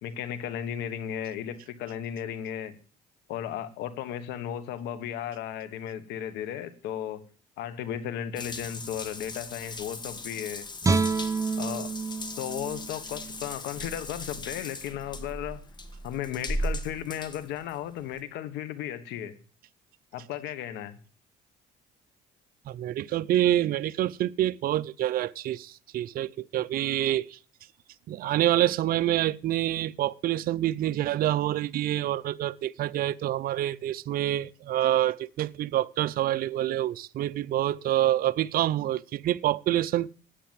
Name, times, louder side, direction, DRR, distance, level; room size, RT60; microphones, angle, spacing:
voice 1, 0.0-2.8 3.3-7.2 7.6-10.7 11.6-11.9 12.4-15.6 16.0-19.4 20.1-21.0, left 10 dB, 85° left, 1.3 m, -35 dB
Water tap faucet / Bathtub (filling or washing) / Drip, 8.4-18.2, left 1 dB, 25° left, 1.4 m, -38 dB
Guitar, 10.8-14.0 14.4-14.5, right 4 dB, 20° right, 0.9 m, -29 dB
voice 2, 22.7-27.4 28.1-40.1, right 13 dB, 60° right, 0.6 m, -27 dB
10.0 x 8.5 x 7.5 m
cardioid pair, 110°, 17 cm